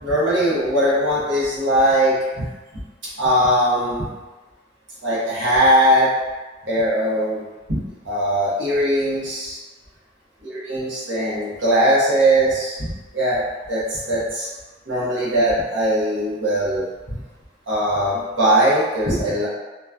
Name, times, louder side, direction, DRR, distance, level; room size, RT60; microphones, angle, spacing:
voice 1, 0.0-2.5 3.2-4.1 5.0-6.1 6.7-9.6 10.4-13.4 13.7-14.5 14.9-16.9 17.7-19.5, right 1 dB, 85° right, -8 dB, 1.0 m, -20 dB
2.9 x 2.2 x 2.4 m, 1.2 s
head